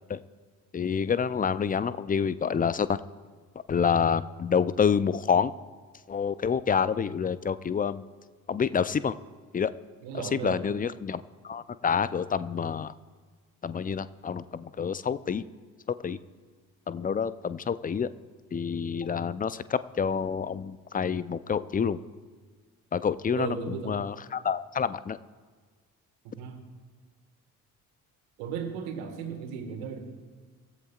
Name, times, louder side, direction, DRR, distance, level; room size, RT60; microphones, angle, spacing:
voice 1, 0.7-3.0 3.7-5.5 6.1-8.0 8.5-9.1 9.5-9.7 10.3-12.9 13.6-15.4 15.9-16.2 16.9-18.1 18.5-22.0 22.9-25.2, left 6 dB, 20° left, 16 dB, 0.6 m, -28 dB
voice 2, 10.0-10.7 23.3-24.0 26.2-26.6 28.4-30.0, right 6 dB, 70° right, 5 dB, 1.9 m, -36 dB
24.5 x 15.0 x 2.5 m, 1.5 s
figure-of-eight pair, 45°, 43 cm